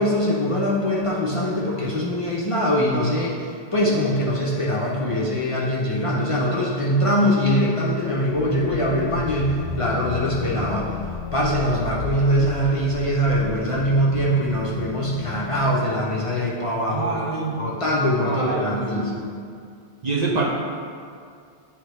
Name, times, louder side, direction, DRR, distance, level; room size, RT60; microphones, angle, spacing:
voice 1, 0.0-3.4 3.7-10.9 11.3-17.2 17.6-19.2, equal, 35° left, -5 dB, 0.6 m, -22 dB
sound 1, 8.2-16.7, left 6 dB, 75° left, 0.9 m, -34 dB
voice 2, 16.9-17.6 18.2-19.2 20.0-20.4, right 4 dB, 45° right, -4 dB, 0.7 m, -26 dB
9.2 x 3.3 x 3.3 m, 2.2 s
omnidirectional pair, 1.1 m